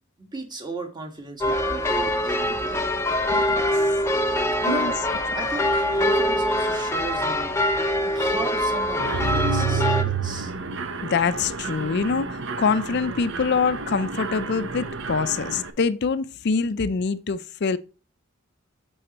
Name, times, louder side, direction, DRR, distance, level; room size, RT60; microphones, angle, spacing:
voice 1, 0.2-2.9 4.6-5.0 5.3-7.6 8.1-10.5, right 2 dB, 20° right, 1.4 m, -35 dB
sound 1, 1.4-10.0, left 1 dB, 15° left, 0.7 m, -24 dB
Mechanisms, 9.0-15.7, right 4 dB, 65° right, 0.8 m, -29 dB
voice 2, 11.0-17.8, left 5 dB, 55° left, 0.4 m, -25 dB
6.6 x 6.2 x 2.9 m
head